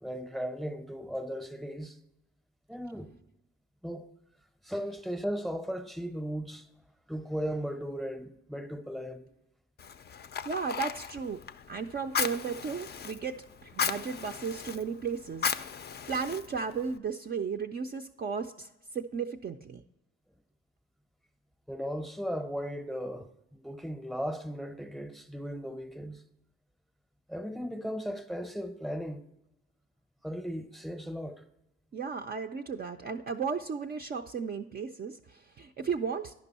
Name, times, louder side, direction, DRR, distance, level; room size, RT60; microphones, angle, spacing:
voice 1, 0.0-2.0 2.7-3.1 3.8-4.1 4.6-6.7 7.1-9.3 21.7-26.2 27.3-29.2 30.2-31.4, equal, ahead, 0.7 m, -36 dB
Fire, 9.8-17.0, left 7 dB, 35° left, 0.4 m, -36 dB
voice 2, 10.4-11.4 11.7-15.8 16.1-19.8 31.9-36.3, right 6 dB, 30° right, 0.4 m, -35 dB
10.5 x 5.3 x 4.1 m
cardioid pair, 90°, 30 cm